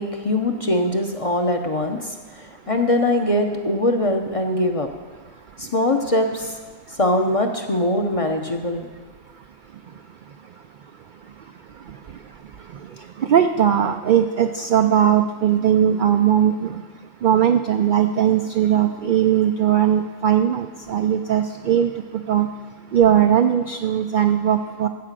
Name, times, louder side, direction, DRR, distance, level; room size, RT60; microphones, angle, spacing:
voice 1, 0.0-4.9 5.6-6.5 6.9-8.9, left 1 dB, 35° left, 4 dB, 0.6 m, -22 dB
voice 2, 13.2-16.8 17.2-21.9 22.3-22.5 22.9-24.9, right 9 dB, 80° right, 7 dB, 0.4 m, -19 dB
14.5 x 5.0 x 7.4 m, 1.5 s
omnidirectional pair, 1.4 m